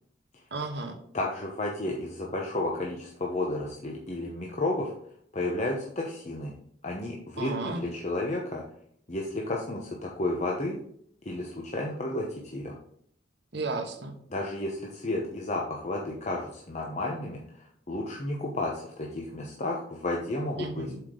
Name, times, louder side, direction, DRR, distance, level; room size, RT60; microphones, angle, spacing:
voice 1, 0.5-1.0 7.4-7.8 13.5-14.1 20.6-21.0, right 3 dB, 60° right, 4 dB, 1.1 m, -33 dB
voice 2, 1.1-4.9 5.3-6.5 6.8-8.6 9.1-10.8 11.2-12.8 14.3-20.9, left 2 dB, 35° left, -1 dB, 0.9 m, -32 dB
7.7 x 4.9 x 3.8 m, 0.66 s
head